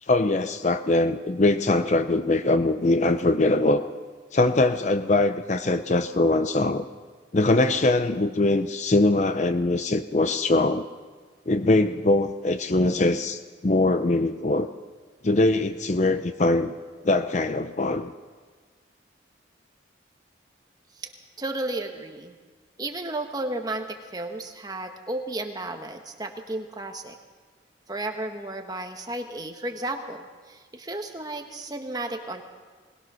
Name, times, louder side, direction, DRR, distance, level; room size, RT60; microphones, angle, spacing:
voice 1, 0.1-3.8 4.3-6.9 7.3-10.9 11.5-14.7 15.2-16.7 17.0-18.1, left 2 dB, 35° left, 10 dB, 0.6 m, -22 dB
voice 2, 21.4-22.3 22.8-27.2 27.9-32.4, right 2 dB, 20° right, 4 dB, 1.4 m, -33 dB
21.0 x 20.0 x 6.3 m, 1.5 s
head